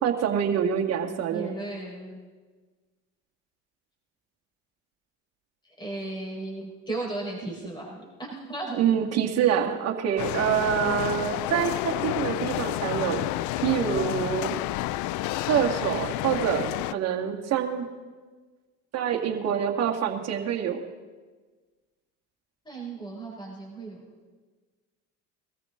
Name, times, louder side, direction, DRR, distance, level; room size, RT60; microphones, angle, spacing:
voice 1, 0.0-1.5 7.4-7.5 8.8-13.2 13.6-14.5 15.5-17.9 18.9-20.8, right 8 dB, 45° right, 1 dB, 2.1 m, -26 dB
voice 2, 1.3-2.2 5.6-8.8 22.6-24.0, right 2 dB, 10° left, -2 dB, 5.2 m, -35 dB
sound 1, 10.2-16.9, left 17 dB, 55° left, 0.5 m, -30 dB
22.0 x 14.0 x 3.8 m, 1.4 s
supercardioid pair, 90°, 35 cm